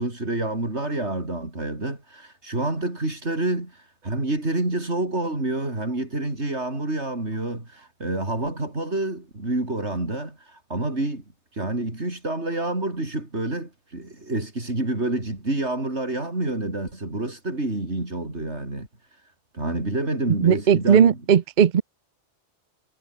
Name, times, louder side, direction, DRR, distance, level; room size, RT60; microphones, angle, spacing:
voice 1, 0.0-11.2 11.5-18.9 19.5-21.2, right 2 dB, 85° right, 5.7 m, -28 dB
voice 2, 20.4-21.8, right 8 dB, 50° right, 0.8 m, -17 dB
omnidirectional pair, 1.1 m